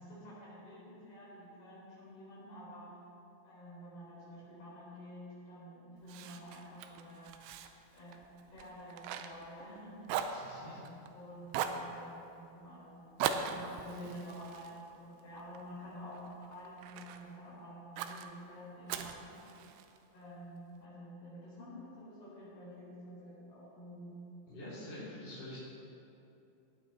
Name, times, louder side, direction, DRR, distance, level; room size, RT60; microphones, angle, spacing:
voice 1, 0.0-3.0 3.4-7.4 7.9-8.2 8.5-10.0 10.5-13.1 13.4-19.5 20.1-24.2, equal, 55° left, -7 dB, 5.5 m, -49 dB
Fire, 6.1-9.8 10.1-11.1 11.5-11.9 13.2-15.6 16.1-17.2 18.0-18.3 18.9-20.0, right 8 dB, 80° right, 2.6 m, -39 dB
voice 2, 10.3-10.8 24.5-25.6, left 1 dB, 25° left, -12 dB, 3.6 m, -46 dB
19.0 x 8.6 x 4.3 m, 2.8 s
omnidirectional pair, 5.7 m